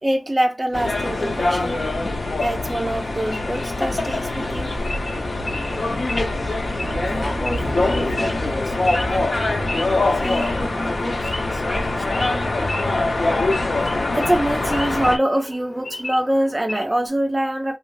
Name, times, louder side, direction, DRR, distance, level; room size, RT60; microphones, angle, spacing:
voice 1, 0.0-1.8 2.4-4.8 6.1-6.3 14.1-17.8, right 1 dB, 20° right, 0.4 m, -24 dB
sound 1, 0.7-15.2, left 2 dB, 60° left, 0.6 m, -23 dB
Wild animals / Idling, 2.4-17.1, left 2 dB, 80° left, 1.2 m, -36 dB
Speech / Wind, 4.4-9.3, right 2 dB, 85° right, 0.4 m, -34 dB
voice 2, 7.1-9.8 10.1-13.0, left 1 dB, 20° left, 0.7 m, -32 dB
3.1 x 2.4 x 2.3 m
wide cardioid pair, 70°, 0 cm